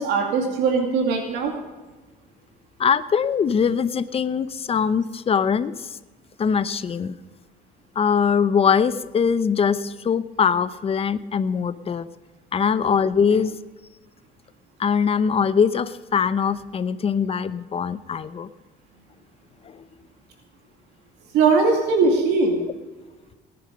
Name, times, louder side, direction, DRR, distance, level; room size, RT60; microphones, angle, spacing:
voice 1, 0.0-1.5 21.3-22.6, right 4 dB, 90° right, 3 dB, 2.4 m, -20 dB
voice 2, 2.8-6.0 6.4-7.1 7.9-12.1 12.5-13.6 14.8-18.5 19.6-19.9, left 6 dB, 35° left, 14 dB, 0.8 m, -22 dB
19.0 x 10.0 x 5.2 m, 1.2 s
cardioid pair, 110°, 17 cm